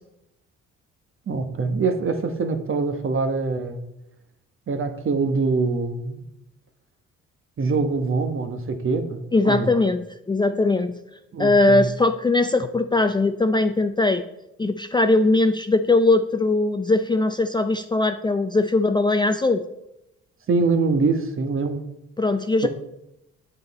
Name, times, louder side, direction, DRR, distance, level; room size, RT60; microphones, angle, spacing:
voice 1, 1.3-3.8 4.7-6.2 7.6-9.7 11.3-11.8 20.5-21.8 22.6-22.7, right 4 dB, 45° right, 7 dB, 1.1 m, -24 dB
voice 2, 9.3-11.0 11.4-14.2 14.6-19.6 22.2-22.7, left 2 dB, 15° left, 8 dB, 0.4 m, -20 dB
7.8 x 7.8 x 4.1 m, 0.86 s
cardioid pair, 90°, 30 cm